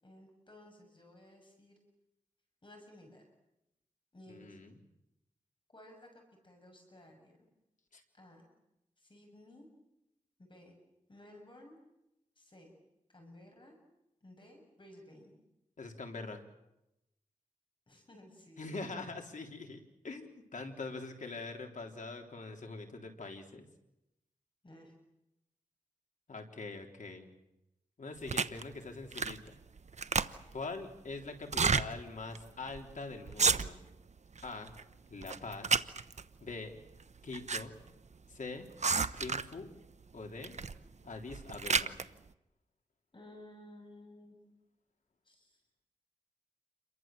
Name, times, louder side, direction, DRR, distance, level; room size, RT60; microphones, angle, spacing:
voice 1, 0.0-1.8 2.6-3.2 4.1-4.6 5.7-7.4 8.1-8.4 9.0-9.7 10.4-10.7 11.1-11.8 12.4-12.7 13.1-13.8 14.2-15.3 17.9-18.8 24.6-24.9 43.1-44.4 45.3-45.6, left 1 dB, 35° left, 2 dB, 7.3 m, -56 dB
voice 2, 4.3-4.7 7.9-8.0 15.8-16.4 18.6-23.7 26.3-27.3 28.0-29.5 30.5-33.8 34.4-34.7 35.1-35.8 36.4-36.8 37.2-37.7 38.3-38.7 39.2-39.7 40.1-40.5 41.0-42.0, left 3 dB, 65° left, 3 dB, 3.6 m, -43 dB
sound 1, 28.3-28.6 29.1-29.5 29.8-30.6 31.4-31.9 32.3-32.4 32.7-32.9 33.3-33.9 34.4-34.8 35.2-36.2 37.0-37.6 37.9-38.0 38.8-39.6 40.4-40.8 41.2-42.0, right 5 dB, 55° right, 0.9 m, -31 dB
28.5 x 23.0 x 7.7 m, 0.88 s
wide cardioid pair, 85°, 14 cm